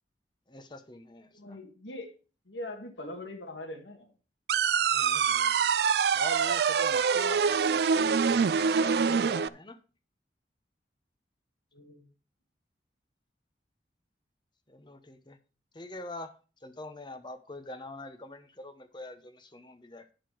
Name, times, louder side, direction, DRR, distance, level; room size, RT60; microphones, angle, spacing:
voice 1, 0.5-1.6 4.9-5.6 6.1-8.1 8.6-9.8 14.7-15.4 15.7-20.1, left 2 dB, 25° left, 0.9 m, -44 dB
voice 2, 1.3-2.1 2.5-4.1 11.7-12.1, left 1 dB, 90° left, 1.7 m, -42 dB
sound 1, 4.5-9.5, right 6 dB, 60° right, 0.4 m, -25 dB
9.6 x 6.7 x 4.6 m
head